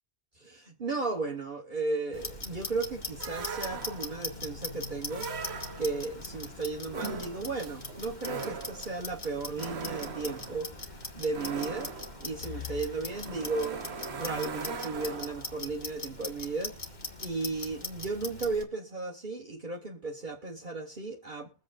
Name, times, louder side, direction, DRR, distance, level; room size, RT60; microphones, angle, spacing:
voice 1, 0.3-10.7 11.1-21.5, right 3 dB, 45° right, 1.5 m, -35 dB
Clock, 2.1-18.6, left 3 dB, 40° left, 1.8 m, -41 dB
sound 1, 3.2-4.3 5.1-6.1 6.9-15.6, right 5 dB, 70° right, 1.2 m, -40 dB
22.0 x 8.3 x 2.5 m
omnidirectional pair, 1.1 m